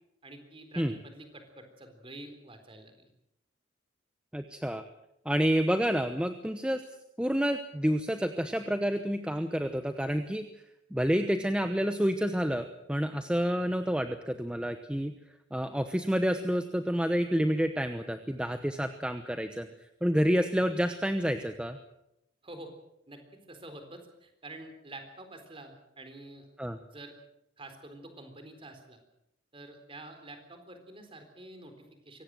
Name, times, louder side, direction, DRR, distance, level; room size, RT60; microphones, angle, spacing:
voice 1, 0.2-3.1 22.4-22.7 23.1-23.2 23.5-26.5 26.9-27.2 27.6-29.0 29.5-32.2, right 2 dB, 30° right, 7 dB, 4.0 m, -48 dB
voice 2, 4.3-4.8 5.2-6.8 7.2-10.4 10.9-15.1 15.5-19.7 20.0-21.8 26.6-26.8, equal, 5° right, 8 dB, 0.9 m, -29 dB
24.0 x 18.0 x 7.7 m, 0.82 s
head